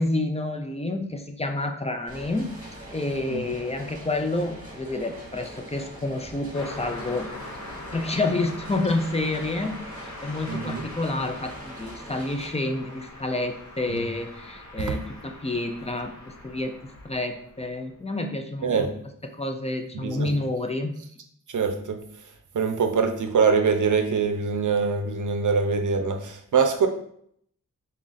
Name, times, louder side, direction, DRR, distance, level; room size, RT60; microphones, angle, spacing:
voice 1, 0.0-2.5 2.9-7.3 7.9-9.7 10.0-16.1 16.4-18.9 19.2-20.9, left 2 dB, 20° left, 5 dB, 0.4 m, -29 dB
Gentle rain on metal roof, 2.1-12.5, right 1 dB, 25° right, 1.3 m, -43 dB
Car passing by, 6.5-18.0, left 2 dB, 60° left, 0.8 m, -42 dB
voice 2, 10.5-10.8 13.9-14.0 14.8-14.9 18.6-18.9 19.9-20.3 21.5-22.0 22.5-26.9, right 5 dB, 65° right, 6 dB, 0.6 m, -23 dB
4.1 x 2.4 x 3.9 m, 0.67 s
wide cardioid pair, 90°, 32 cm